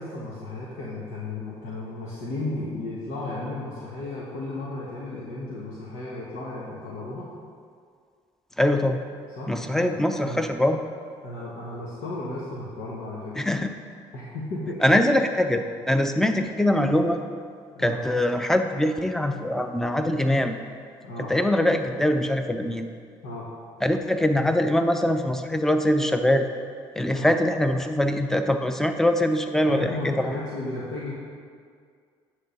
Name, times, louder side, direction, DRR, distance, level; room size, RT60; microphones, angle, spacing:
voice 1, 0.0-7.3 9.4-10.4 11.2-13.5 14.1-14.8 17.7-18.0 21.0-21.3 23.2-23.5 27.1-27.3 29.6-31.2, left 2 dB, 80° left, -6 dB, 1.3 m, -34 dB
voice 2, 8.6-9.0 9.5-10.8 13.4-13.7 14.8-17.2 17.8-20.6 21.3-22.9 23.8-26.5 27.0-30.3, left 1 dB, 5° left, 6 dB, 0.6 m, -23 dB
9.8 x 3.7 x 6.5 m, 2.1 s
supercardioid pair, 80°, 12 cm